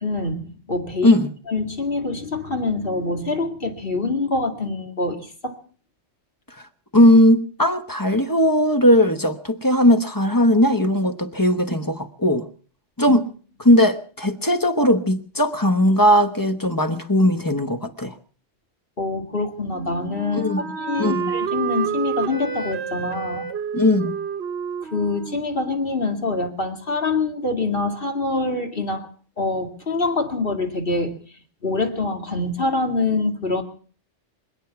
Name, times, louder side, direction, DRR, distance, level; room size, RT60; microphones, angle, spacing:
voice 1, 0.0-1.2 1.5-5.6 13.1-13.2 19.0-23.5 24.8-29.1 29.4-31.2 31.6-33.6, left 3 dB, 50° left, 2.4 m, -25 dB
voice 2, 6.9-12.5 13.0-13.3 13.6-18.1 20.3-20.6 21.0-21.3 23.7-24.1, left 1 dB, 20° left, 1.1 m, -18 dB
Wind instrument woodwind instrument, 19.7-26.5, right 6 dB, 60° right, 1.2 m, -29 dB
26.0 x 9.3 x 5.9 m
omnidirectional pair, 1.2 m